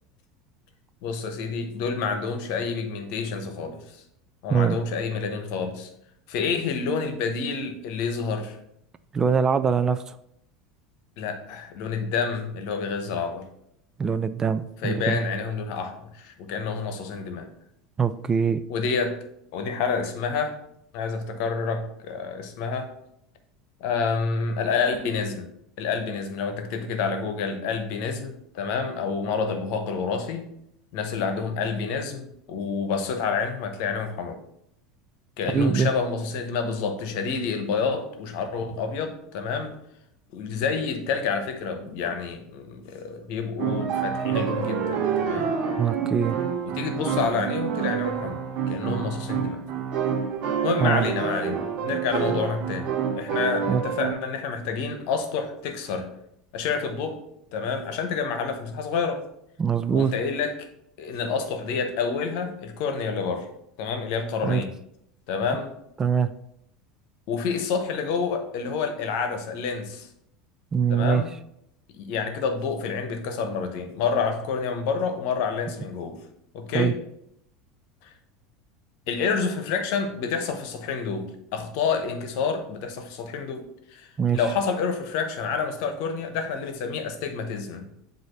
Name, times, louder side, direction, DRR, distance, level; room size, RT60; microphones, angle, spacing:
voice 1, 1.0-4.0 4.4-5.9 6.3-8.6 11.2-13.4 14.8-17.5 18.7-19.2 19.5-20.6 20.9-22.9 23.8-25.5 25.8-30.5 30.9-34.4 35.4-39.7 40.3-45.5 46.6-48.4 48.7-49.6 50.6-52.9 53.1-56.1 56.5-57.2 57.5-59.2 59.9-60.7 61.0-63.5 63.8-64.7 65.3-65.7 67.3-70.1 70.9-71.3 71.9-76.2 76.5-77.0 78.0-78.1 79.1-84.1 84.3-87.9, left 5 dB, 60° left, 7 dB, 1.0 m, -28 dB
voice 2, 9.1-10.1 14.0-15.2 18.0-18.6 35.5-35.9 45.8-46.4 50.8-51.1 53.7-53.8 59.6-60.1 64.4-64.6 66.0-66.3 70.7-71.2 76.7-76.9 84.2-84.4, right 6 dB, 25° right, 12 dB, 0.4 m, -23 dB
sound 1, 43.6-54.1, right 7 dB, 50° right, 1.1 m, -27 dB
7.7 x 2.7 x 5.8 m, 0.76 s
hypercardioid pair, 75°, 2 cm